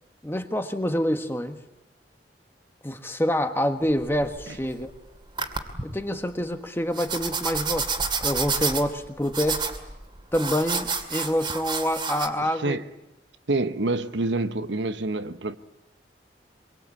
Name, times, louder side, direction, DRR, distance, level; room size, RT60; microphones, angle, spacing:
voice 1, 0.2-1.6 2.8-4.9 5.8-7.9 8.2-9.6 10.3-12.8, equal, 15° left, 1.5 m, -26 dB
sound 1, 3.8-4.9 5.4-5.8 6.9-12.3, right 5 dB, 25° right, 2.4 m, -29 dB
voice 2, 12.4-12.8 13.5-15.6, right 2 dB, 80° right, 1.1 m, -27 dB
25.0 x 23.5 x 8.6 m
head